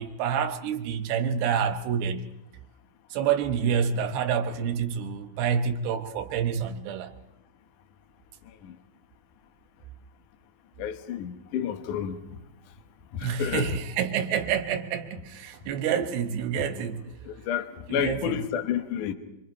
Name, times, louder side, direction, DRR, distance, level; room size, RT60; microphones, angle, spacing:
voice 1, 0.0-2.3 3.1-7.1 13.2-17.0 17.9-18.4, right 7 dB, 75° right, 3.0 m, -28 dB
voice 2, 10.8-12.2 13.1-13.8 17.3-19.1, left 9 dB, 70° left, 2.0 m, -30 dB
26.0 x 25.0 x 4.5 m
omnidirectional pair, 5.4 m